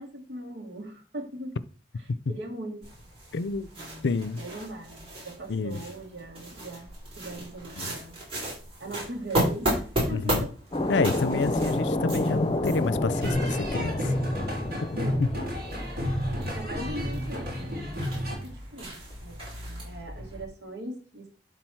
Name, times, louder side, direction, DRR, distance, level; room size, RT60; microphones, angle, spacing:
voice 1, 0.0-1.6 2.3-2.9 3.8-8.2 8.8-10.5 14.9-15.2 16.3-19.6 19.8-21.3, right 1 dB, 80° right, 2.2 m, -40 dB
sound 1, 2.8-20.4, right 1 dB, 35° right, 4.5 m, -35 dB
voice 2, 3.3-3.7 4.0-4.4 5.5-5.8 7.8-7.9 10.1-10.5 10.9-14.2 14.8-15.0, left 4 dB, 85° left, 0.5 m, -29 dB
sound 2, 10.7-17.1, left 1 dB, 30° left, 0.6 m, -30 dB
sound 3, 13.1-18.4, equal, 60° right, 3.4 m, -31 dB
11.5 x 4.0 x 4.6 m
head